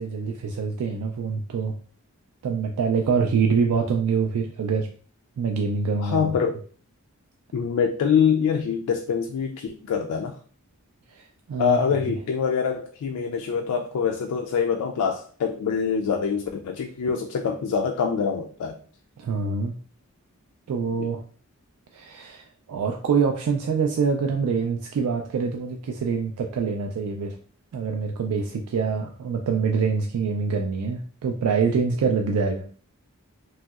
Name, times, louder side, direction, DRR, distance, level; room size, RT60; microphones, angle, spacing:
voice 1, 0.0-1.8 2.4-4.9 5.4-6.3 11.1-11.8 19.2-19.7 20.7-21.2 21.9-27.4 27.7-32.7, right 5 dB, 85° right, 2 dB, 0.3 m, -25 dB
voice 2, 6.0-6.6 7.5-10.4 11.6-18.8 21.0-21.1, left 6 dB, 80° left, 4 dB, 0.3 m, -25 dB
3.0 x 2.7 x 2.3 m, 0.43 s
head